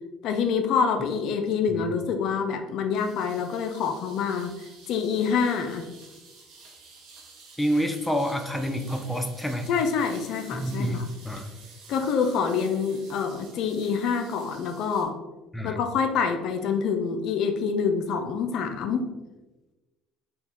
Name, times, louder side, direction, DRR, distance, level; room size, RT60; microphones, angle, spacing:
voice 1, 0.2-4.5 4.9-5.9 9.7-11.1 11.9-15.2 15.6-19.1, left 6 dB, 65° left, 6 dB, 0.4 m, -26 dB
sound 1, 2.9-15.0, right 4 dB, 75° right, 1.0 m, -50 dB
voice 2, 7.6-9.7 10.5-11.5 15.5-15.8, equal, 10° left, 5 dB, 0.5 m, -28 dB
4.3 x 2.2 x 3.5 m, 1.1 s
supercardioid pair, 80°, 0 cm